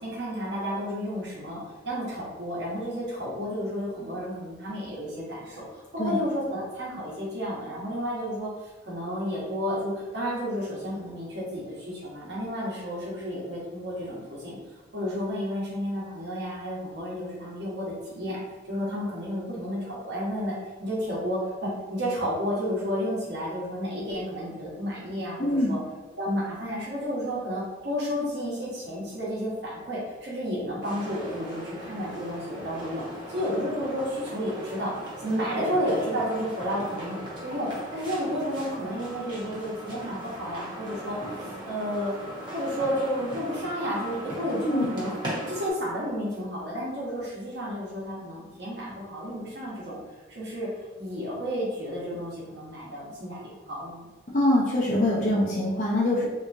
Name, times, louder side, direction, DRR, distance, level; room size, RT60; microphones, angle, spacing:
voice 1, 0.0-14.6 14.9-18.4 18.7-25.8 26.2-33.0 33.3-34.9 35.2-37.2 37.4-42.1 42.5-45.1 45.5-50.0 50.3-50.7 51.0-54.0, equal, 65° right, -6 dB, 1.2 m, -31 dB
voice 2, 25.4-25.8 44.6-44.9 54.3-56.3, left 1 dB, 40° left, -6 dB, 0.6 m, -23 dB
sound 1, 30.8-45.7, equal, 25° right, 0.9 m, -39 dB
3.4 x 2.9 x 2.6 m, 1.2 s
head